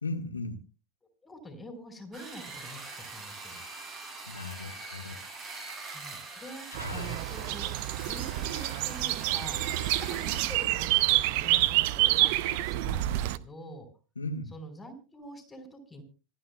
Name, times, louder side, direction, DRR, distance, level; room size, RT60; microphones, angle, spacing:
voice 1, 0.0-0.6 4.3-5.3 6.7-7.2 14.1-14.5, left 2 dB, 75° left, 4 dB, 1.5 m, -37 dB
voice 2, 1.2-3.6 5.9-7.7 8.1-13.9 14.5-16.0, equal, 10° left, 5 dB, 4.7 m, -46 dB
sound 1, 2.1-10.5, right 3 dB, 30° right, 7.6 m, -43 dB
sound 2, 6.7-13.4, right 17 dB, 45° right, 0.6 m, -28 dB
sound 3, 8.0-8.8 9.6-11.0, right 5 dB, 65° right, 2.7 m, -51 dB
26.0 x 9.6 x 2.3 m, 0.33 s
figure-of-eight pair, 90°, 0 cm